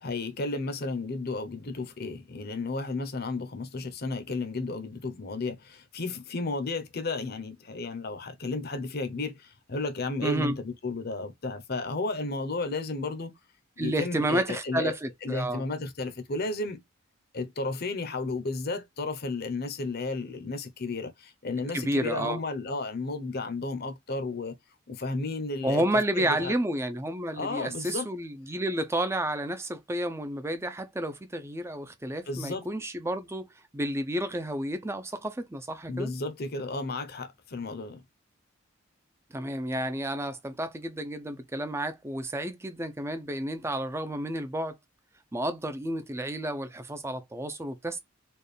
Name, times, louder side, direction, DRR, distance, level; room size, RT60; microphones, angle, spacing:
voice 1, 0.0-13.3 13.8-14.9 15.2-16.8 17.3-24.5 24.9-25.8 26.2-26.6 27.4-28.1 32.3-32.7 35.9-38.0, left 3 dB, 50° left, 0.8 m, -33 dB
voice 2, 10.2-10.6 13.8-15.7 21.7-22.4 25.6-33.5 33.7-36.1 39.3-44.8 45.3-48.0, right 1 dB, 15° right, 0.5 m, -31 dB
4.4 x 2.4 x 3.3 m
head